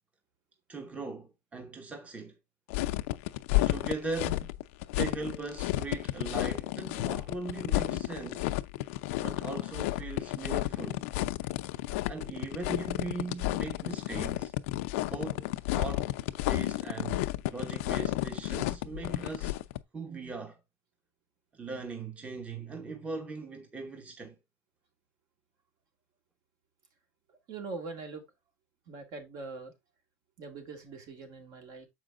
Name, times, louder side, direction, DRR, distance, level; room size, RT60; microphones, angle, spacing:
voice 1, 0.7-2.4 3.7-4.6 5.0-8.5 9.2-11.0 12.1-14.5 15.1-16.1 16.5-19.7 19.9-20.6 21.5-24.3, right 3 dB, 20° right, 1.1 m, -39 dB
sound 1, 2.7-19.8, left 17 dB, 80° left, 0.5 m, -31 dB
voice 2, 27.3-28.2 28.9-29.7 30.4-31.9, right 3 dB, 60° right, 2.5 m, -42 dB
7.1 x 4.9 x 3.6 m
supercardioid pair, 135°, 7 cm